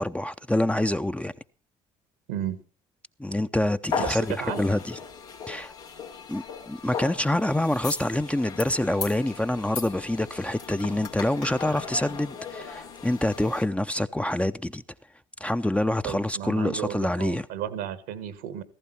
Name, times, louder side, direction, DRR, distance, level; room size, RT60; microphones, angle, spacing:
voice 1, 0.0-1.3 3.2-5.0 5.5-5.7 6.3-14.8 15.4-17.5, left 1 dB, 5° left, 0.7 m, -26 dB
voice 2, 2.3-2.6 3.9-4.8 16.0-18.6, right 10 dB, 80° right, 1.5 m, -33 dB
sound 1, 3.9-13.7, left 6 dB, 85° left, 2.5 m, -37 dB
15.5 x 14.5 x 4.4 m
hypercardioid pair, 55°, 17 cm